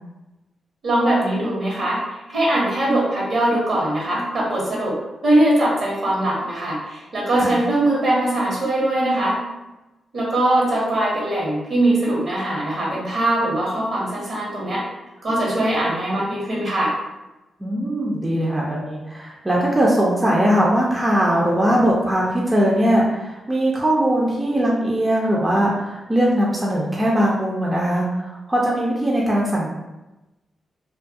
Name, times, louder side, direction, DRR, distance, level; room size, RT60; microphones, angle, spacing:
voice 1, 0.8-2.0 2.3-4.9 5.2-9.4 10.1-14.8 15.2-16.9, right 1 dB, 65° right, -5 dB, 1.1 m, -21 dB
voice 2, 17.6-29.7, right 1 dB, 20° right, -4 dB, 0.5 m, -20 dB
2.3 x 2.2 x 2.6 m, 1.0 s
supercardioid pair, 45°, 0 cm